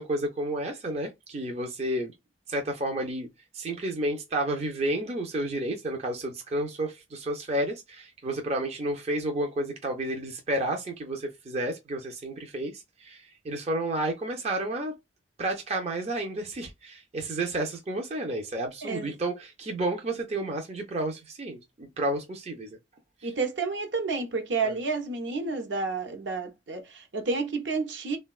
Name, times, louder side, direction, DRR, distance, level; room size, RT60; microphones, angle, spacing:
voice 1, 0.0-2.1 2.5-3.3 3.5-14.9 15.4-22.7 23.2-23.3 24.6-24.8, right 1 dB, 35° right, 0.4 m, -31 dB
voice 2, 23.2-28.2, right 4 dB, 70° right, 0.7 m, -30 dB
3.6 x 2.2 x 2.3 m
head